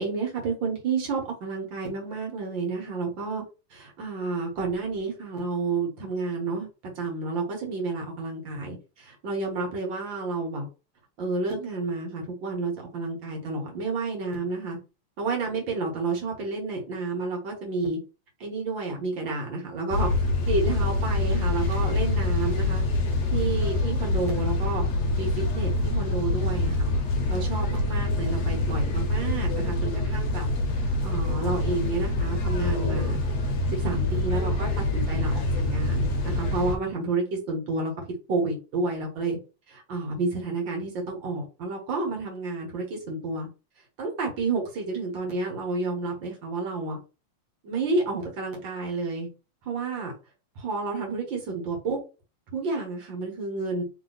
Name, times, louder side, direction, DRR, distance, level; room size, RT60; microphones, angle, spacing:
voice 1, 0.0-3.4 3.7-6.7 7.0-10.7 11.2-14.8 15.2-18.0 18.4-20.1 20.5-22.8 23.3-24.8 25.2-26.9 27.3-30.5 31.0-33.2 33.7-37.9 38.3-39.4 39.7-43.5 44.0-47.0 47.6-49.3 49.7-50.1 50.6-52.0 52.5-53.8, right 3 dB, 65° right, 1 dB, 2.1 m, -30 dB
sound 1, 19.9-36.8, left 2 dB, 55° left, 1.4 m, -26 dB
3.9 x 3.0 x 3.9 m, 0.31 s
omnidirectional pair, 2.3 m